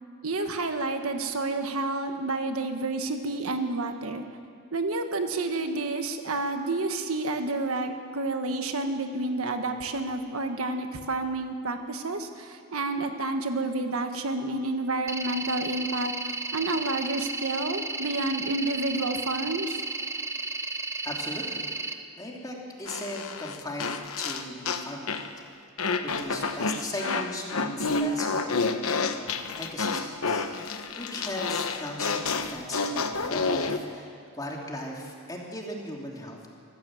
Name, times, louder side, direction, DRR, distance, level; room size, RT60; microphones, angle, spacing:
voice 1, 0.2-4.2 4.7-19.8, right 2 dB, 70° right, 6 dB, 1.4 m, -30 dB
sound 1, 15.1-21.9, right 3 dB, 15° right, 0.8 m, -33 dB
voice 2, 21.0-25.4 25.8-36.5, left 1 dB, 15° left, -1 dB, 2.9 m, -38 dB
sound 2, 22.9-25.3 25.8-33.8, left 4 dB, 75° left, 1.1 m, -29 dB
24.0 x 14.5 x 7.7 m, 2.2 s
head